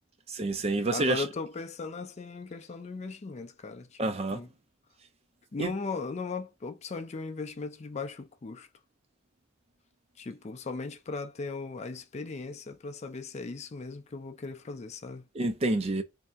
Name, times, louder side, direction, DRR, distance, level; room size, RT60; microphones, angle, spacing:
voice 1, 0.3-1.3 4.0-4.4 5.6-5.7 15.3-16.0, right 2 dB, 30° right, 0.5 m, -28 dB
voice 2, 0.9-4.5 5.5-8.7 10.2-15.2, left 4 dB, 35° left, 0.4 m, -38 dB
3.3 x 2.7 x 3.5 m
head